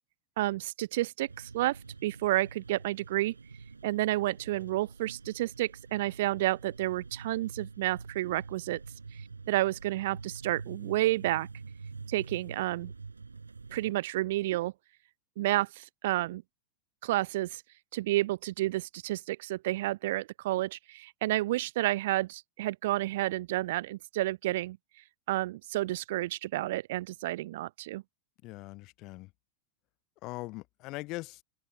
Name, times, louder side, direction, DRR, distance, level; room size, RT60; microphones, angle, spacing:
voice 1, 0.4-3.3 3.8-8.8 9.5-11.5 12.1-12.9 13.7-14.7 15.4-16.4 17.0-17.6 17.9-24.8 25.3-28.0, right 16 dB, 55° right, 0.5 m, -30 dB
sound 1, 1.3-13.9, right 4 dB, 75° right, 5.4 m, -46 dB
voice 2, 28.4-29.3 30.2-31.4, left 22 dB, 40° left, 0.5 m, -41 dB
open air
figure-of-eight pair, 90°, 0 cm